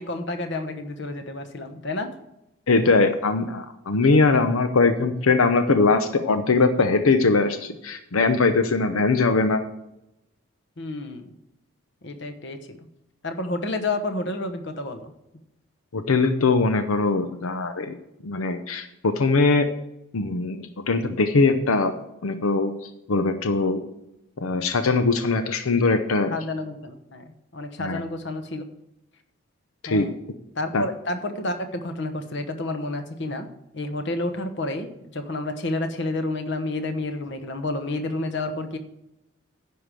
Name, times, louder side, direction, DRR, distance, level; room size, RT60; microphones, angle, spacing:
voice 1, 0.0-2.1 10.8-11.3 12.0-12.9 13.2-15.1 26.3-28.7 29.9-30.1 30.6-33.5 33.7-38.8, left 2 dB, 55° left, 8 dB, 1.1 m, -30 dB
voice 2, 2.7-9.6 15.9-18.0 18.2-19.7 20.1-21.9 22.2-22.7 23.1-23.8 24.4-26.3 27.8-28.0 29.8-30.1 30.7-30.8, left 3 dB, 85° left, 8 dB, 0.7 m, -21 dB
10.0 x 4.9 x 7.5 m, 0.87 s
head